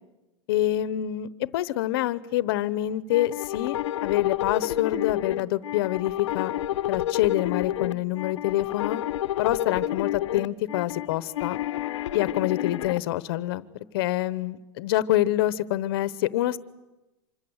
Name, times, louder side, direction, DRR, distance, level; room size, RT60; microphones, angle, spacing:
voice 1, 0.5-6.5 6.9-9.0 9.4-11.6 12.1-13.7 13.9-16.6, left 14 dB, 50° left, 17 dB, 1.0 m, -26 dB
sound 1, 3.1-13.0, left 13 dB, 75° left, 0.9 m, -29 dB
26.0 x 22.0 x 8.0 m, 1.0 s
supercardioid pair, 170°, 15 cm